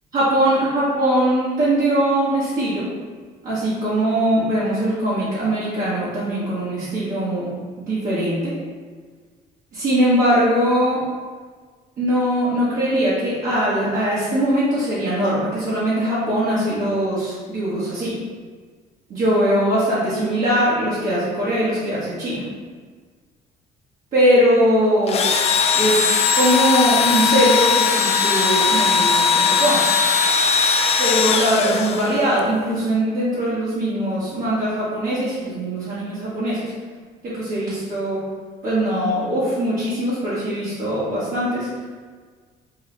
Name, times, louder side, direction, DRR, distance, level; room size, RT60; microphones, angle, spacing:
voice 1, 0.1-2.9 3.4-7.5 7.8-8.5 9.7-11.0 12.0-18.2 19.1-22.4 24.1-25.3 25.7-29.8 31.0-36.7 37.2-38.2 38.6-41.7, equal, 50° right, -11 dB, 1.2 m, -21 dB
Engine / Drill, 25.1-32.4, left 5 dB, 40° left, 0.4 m, -19 dB
4.5 x 2.2 x 3.2 m, 1.5 s
cardioid pair, 110°, 17 cm